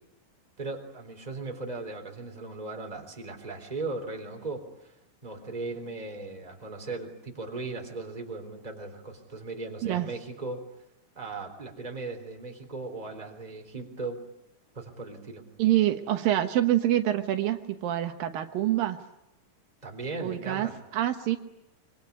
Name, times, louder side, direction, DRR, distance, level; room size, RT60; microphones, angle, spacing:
voice 1, 0.6-4.9 5.2-10.6 11.1-14.2 14.7-15.4 19.8-20.8, right 3 dB, 10° right, 4 dB, 3.3 m, -37 dB
voice 2, 15.6-19.0 20.2-21.4, right 13 dB, 80° right, 7 dB, 2.9 m, -26 dB
25.0 x 24.0 x 9.6 m, 0.88 s
omnidirectional pair, 4.1 m